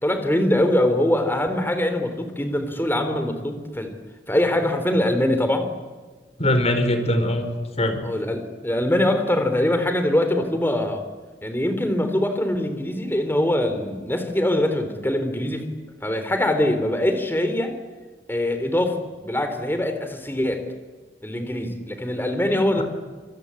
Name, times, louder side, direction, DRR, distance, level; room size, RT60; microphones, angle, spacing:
voice 1, 0.0-3.9 4.3-5.7 8.0-11.0 11.4-15.6 16.0-17.7 18.3-20.6 21.2-22.8, left 1 dB, 10° left, 7 dB, 3.8 m, -23 dB
voice 2, 6.4-7.5 7.8-8.1 22.8-22.9, left 1 dB, 35° left, 7 dB, 4.8 m, -21 dB
28.0 x 22.5 x 8.6 m, 1.4 s
head